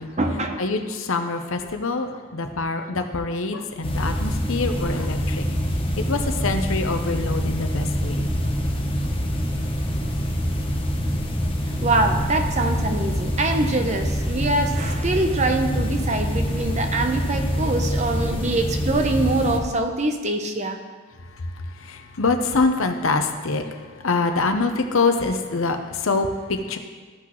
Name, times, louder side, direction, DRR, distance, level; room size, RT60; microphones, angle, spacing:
voice 1, 0.0-0.6 8.1-8.2 9.9-10.1 11.7-20.8, right 2 dB, 30° right, 5 dB, 0.7 m, -24 dB
voice 2, 0.6-5.4 6.1-8.3 21.4-26.8, left 3 dB, 65° left, 6 dB, 0.7 m, -25 dB
sound 1, 3.8-19.6, equal, 25° left, 0.9 m, -25 dB
14.5 x 6.0 x 3.1 m, 1.5 s
head